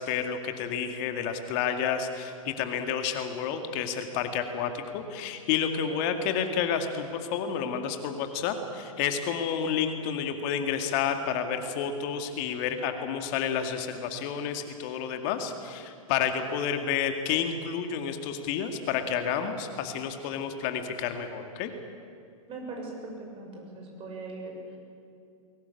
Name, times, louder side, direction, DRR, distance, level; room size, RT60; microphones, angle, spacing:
voice 1, 0.0-21.7, left 7 dB, 45° left, 6 dB, 2.2 m, -30 dB
voice 2, 22.5-24.8, right 2 dB, 30° right, 1 dB, 6.5 m, -40 dB
22.5 x 18.0 x 8.6 m, 2.5 s
figure-of-eight pair, 105°, 18 cm